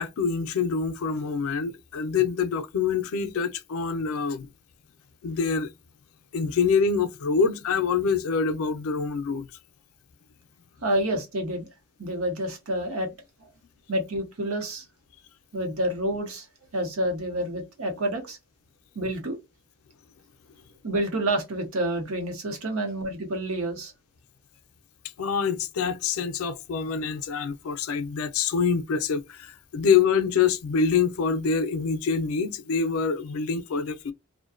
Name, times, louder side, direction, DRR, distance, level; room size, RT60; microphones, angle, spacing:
voice 1, 0.0-4.5 5.2-5.7 6.3-9.5 25.2-34.1, left 5 dB, 80° left, 0.4 m, -25 dB
voice 2, 10.8-11.7 12.0-13.1 13.4-13.5 13.9-14.8 15.5-16.5 16.7-18.4 18.9-19.4 20.8-23.9, right 1 dB, 80° right, 0.9 m, -28 dB
2.5 x 2.1 x 2.4 m
head